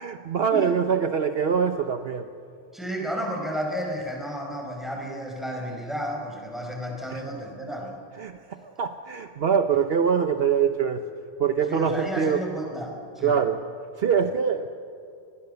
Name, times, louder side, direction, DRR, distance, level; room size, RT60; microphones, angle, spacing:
voice 1, 0.0-2.3 7.1-7.5 8.2-11.1 11.4-12.4 13.2-13.7 14.0-14.7, right 7 dB, 60° right, 8 dB, 1.0 m, -24 dB
voice 2, 2.7-8.0 11.7-13.4, equal, ahead, 0 dB, 5.3 m, -32 dB
29.0 x 20.0 x 6.9 m, 2.5 s
omnidirectional pair, 1.2 m